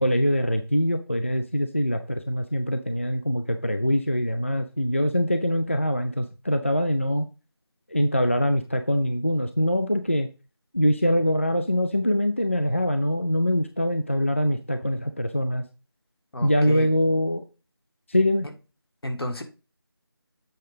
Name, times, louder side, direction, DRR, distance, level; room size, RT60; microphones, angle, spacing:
voice 1, 0.0-7.3 7.9-10.3 10.7-15.6 16.4-17.4 18.1-18.5, equal, 30° left, 0.4 m, -23 dB
voice 2, 16.3-16.9 19.0-19.4, left 1 dB, 70° left, 1.6 m, -31 dB
7.8 x 3.7 x 5.1 m
figure-of-eight pair, 170°, 13 cm